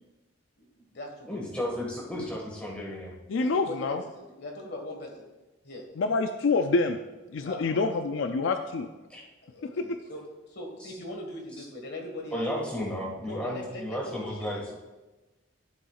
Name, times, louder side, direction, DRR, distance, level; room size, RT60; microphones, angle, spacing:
voice 1, 0.6-1.3 3.4-5.3 5.6-5.8 7.4-7.9 9.5-10.2 10.5-12.9 13.2-14.5, left 1 dB, 55° left, 1 dB, 1.7 m, -40 dB
voice 2, 1.3-3.1 9.1-9.2 12.3-14.7, left 1 dB, 5° left, -4 dB, 1.8 m, -33 dB
voice 3, 3.3-4.0 6.0-7.0 7.3-8.9 9.6-9.8, left 3 dB, 75° left, 7 dB, 0.4 m, -26 dB
12.5 x 7.0 x 2.4 m, 1.1 s
head